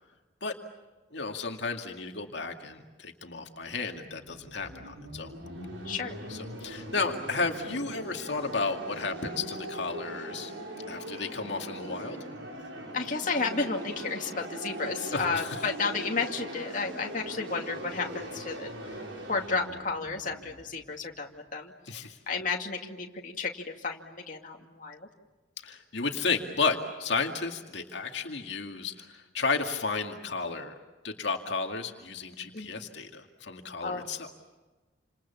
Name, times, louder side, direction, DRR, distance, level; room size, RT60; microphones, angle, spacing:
voice 1, 1.1-5.3 6.3-10.5 10.9-12.2 15.1-15.6 21.9-22.2 25.6-30.7 31.0-34.3, left 4 dB, 65° left, 3 dB, 2.3 m, -33 dB
sound 1, 3.7-21.4, right 1 dB, 80° right, 6.5 m, -41 dB
voice 2, 5.8-6.2 12.9-19.0 19.3-21.7 22.0-25.1 32.5-32.7 33.8-34.1, left 4 dB, 40° left, 1 dB, 2.4 m, -32 dB
29.5 x 27.5 x 7.2 m, 1.2 s
head